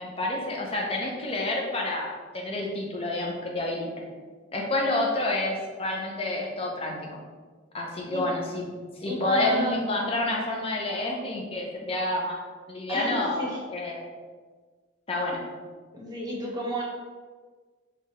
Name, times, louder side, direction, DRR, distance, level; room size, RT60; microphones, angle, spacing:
voice 1, 0.0-3.9 4.5-7.2 7.7-8.7 9.0-12.4 12.7-14.1 15.1-15.4, left 2 dB, 30° left, -1 dB, 0.6 m, -29 dB
voice 2, 9.1-9.8 12.9-13.6 15.9-16.8, right 1 dB, 20° right, -4 dB, 0.9 m, -32 dB
4.8 x 2.4 x 2.9 m, 1.4 s
head